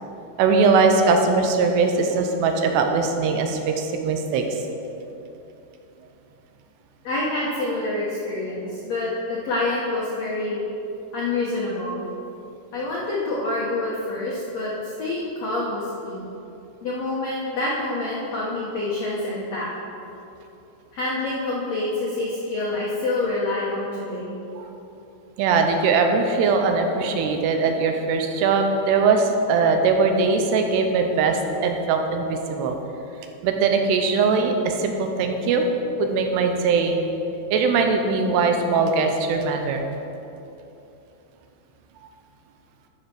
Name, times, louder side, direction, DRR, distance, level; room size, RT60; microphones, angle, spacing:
voice 1, 0.4-4.4 24.6-24.7 25.4-32.8 33.4-35.7 36.0-37.1 37.5-39.8, right 4 dB, 85° right, 4 dB, 2.9 m, -21 dB
voice 2, 7.0-10.6 11.1-12.0 12.7-14.7 15.0-16.2 16.8-19.7 20.9-24.4 36.0-36.1, left 2 dB, 75° left, -5 dB, 1.5 m, -27 dB
13.0 x 5.8 x 6.0 m, 2.9 s
omnidirectional pair, 4.8 m